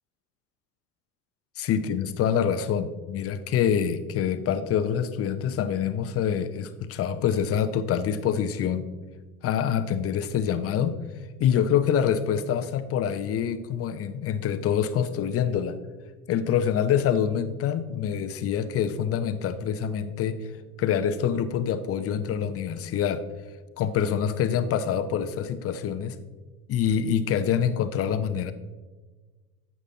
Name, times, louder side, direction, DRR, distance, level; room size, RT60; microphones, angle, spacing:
voice 1, 1.6-8.9 9.4-11.0 11.4-15.8 16.3-20.4 20.8-23.2 23.8-26.2 26.7-28.5, left 8 dB, 30° left, 11 dB, 0.7 m, -26 dB
11.5 x 8.0 x 2.8 m, 1.3 s
hypercardioid pair, 80°, 47 cm